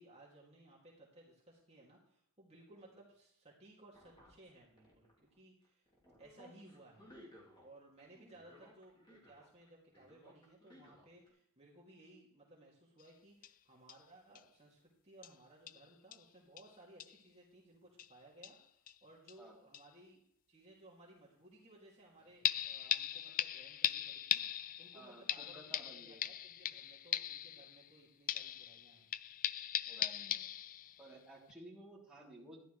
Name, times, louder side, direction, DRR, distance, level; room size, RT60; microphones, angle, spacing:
voice 1, 0.0-5.9 6.2-7.1 7.6-20.2 20.5-29.1, right 1 dB, 30° right, -4 dB, 2.5 m, -61 dB
sound 1, 3.9-5.4 5.6-7.7 8.0-9.7 9.9-11.3, left 1 dB, 20° left, 3.2 m, -60 dB
sound 2, 13.0-13.1 13.4-13.5 13.9-14.0 14.3-14.4 15.2-15.3 15.7-15.8 16.1-16.2 16.6-16.7 17.0-17.2 18.0-18.1 18.4-19.0 19.3-19.4 19.7-19.8 22.4-28.0 28.3-31.1 31.5-31.6, left 11 dB, 40° left, 0.3 m, -39 dB
voice 2, 24.9-26.2 29.8-30.5 31.0-32.6, right 1 dB, 5° right, -6 dB, 3.3 m, -55 dB
13.5 x 11.0 x 3.3 m, 0.70 s
head